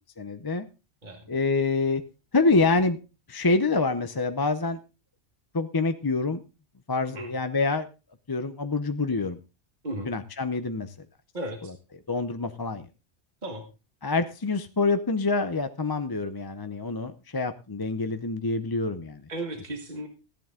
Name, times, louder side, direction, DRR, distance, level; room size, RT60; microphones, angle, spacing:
voice 1, 0.2-0.7 1.3-2.0 2.3-3.0 3.3-4.8 5.5-6.4 6.9-7.9 8.3-9.4 10.0-11.1 12.1-12.9 14.0-19.2, left 3 dB, 25° left, 9 dB, 0.6 m, -26 dB
voice 2, 11.3-11.7 13.4-13.7 19.3-20.1, right 1 dB, 40° right, 5 dB, 1.7 m, -35 dB
15.0 x 10.5 x 3.7 m, 0.30 s
omnidirectional pair, 1.2 m